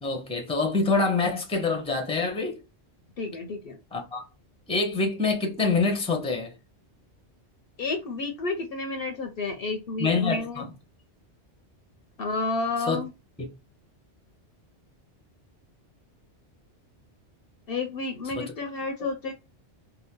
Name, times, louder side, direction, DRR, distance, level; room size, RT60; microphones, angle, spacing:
voice 1, 0.0-2.6 3.9-4.2 4.7-6.5 10.0-10.6 12.9-13.0 18.3-18.5, left 4 dB, 5° left, 0.7 m, -26 dB
voice 2, 3.2-3.8 7.8-10.6 12.2-13.1 17.7-19.3, left 3 dB, 65° left, 0.7 m, -31 dB
2.8 x 2.3 x 3.5 m
omnidirectional pair, 1.1 m